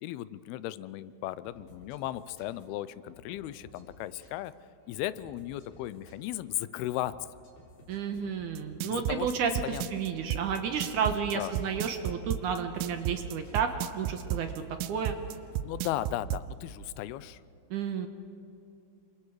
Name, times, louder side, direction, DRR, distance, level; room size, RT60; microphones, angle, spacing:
voice 1, 0.0-4.5 4.9-7.3 8.9-9.3 9.6-10.0 11.3-11.5 15.6-17.4, left 14 dB, 90° left, 16 dB, 2.6 m, -36 dB
sound 1, 1.4-16.1, equal, 50° left, 5.0 m, -56 dB
voice 2, 7.9-14.5 14.9-15.2 17.7-18.1, right 6 dB, 65° right, 6 dB, 2.3 m, -31 dB
sound 2, 8.6-16.4, right 12 dB, 90° right, 2.6 m, -32 dB
28.5 x 24.0 x 4.8 m, 2.8 s
omnidirectional pair, 4.4 m